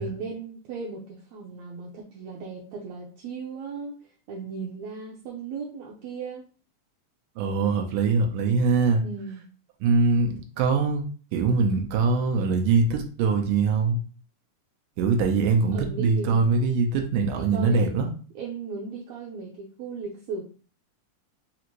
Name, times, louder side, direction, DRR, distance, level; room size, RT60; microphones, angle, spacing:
voice 1, 0.0-4.0 4.3-6.4 9.0-9.4 15.7-16.4 17.3-18.1 18.4-20.4, right 4 dB, 75° right, 1.6 m, -36 dB
voice 2, 7.4-9.0 9.8-11.0 11.3-14.0 15.0-18.1, right 4 dB, 90° right, 2.3 m, -23 dB
5.5 x 2.5 x 2.9 m
omnidirectional pair, 3.7 m